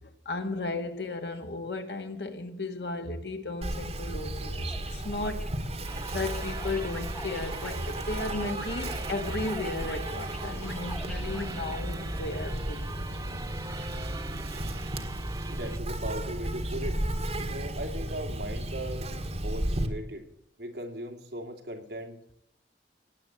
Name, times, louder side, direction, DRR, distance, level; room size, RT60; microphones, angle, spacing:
voice 1, 0.0-5.5 6.1-13.0, left 2 dB, 70° left, 1.7 m, -35 dB
Insect, 3.6-19.9, right 1 dB, 35° right, 1.7 m, -34 dB
sound 1, 4.7-11.8, equal, 5° left, 0.9 m, -48 dB
sound 2, 5.9-15.8, right 3 dB, 20° right, 0.9 m, -42 dB
voice 2, 15.5-17.0 17.5-19.1 19.4-20.2 20.6-22.2, right 1 dB, 70° right, 2.5 m, -38 dB
17.5 x 9.1 x 8.1 m
head